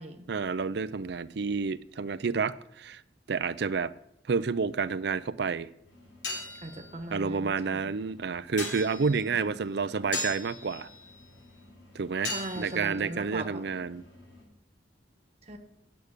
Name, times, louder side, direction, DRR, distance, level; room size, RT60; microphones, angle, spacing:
voice 1, 0.3-3.0 3.3-3.9 4.3-5.7 7.1-10.9 11.9-14.0, right 5 dB, 65° right, 0.5 m, -30 dB
sound 1, 5.9-14.4, left 2 dB, 90° left, 4.1 m, -41 dB
voice 2, 6.6-7.9 9.0-9.6 12.2-13.6 15.4-15.6, right 2 dB, 35° right, 1.2 m, -40 dB
8.9 x 6.5 x 8.1 m
head